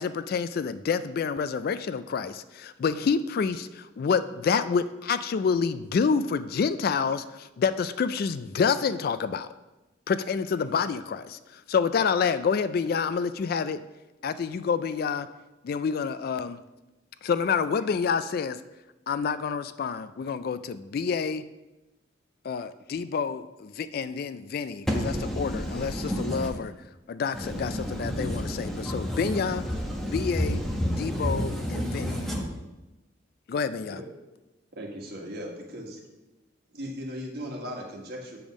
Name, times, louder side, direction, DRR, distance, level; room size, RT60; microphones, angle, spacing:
voice 1, 0.0-9.5 10.1-13.8 14.2-15.3 15.6-16.6 17.2-18.6 19.1-21.4 22.4-24.9 25.4-26.7 27.1-29.6 30.1-30.6 31.0-32.1 33.5-34.0, left 6 dB, 50° left, 13 dB, 0.3 m, -28 dB
voice 2, 24.9-26.5 27.3-32.4, equal, ahead, -1 dB, 1.2 m, -30 dB
voice 3, 34.7-36.0 36.7-38.4, equal, 55° right, 0 dB, 1.6 m, -37 dB
6.9 x 5.3 x 6.2 m, 1.1 s
head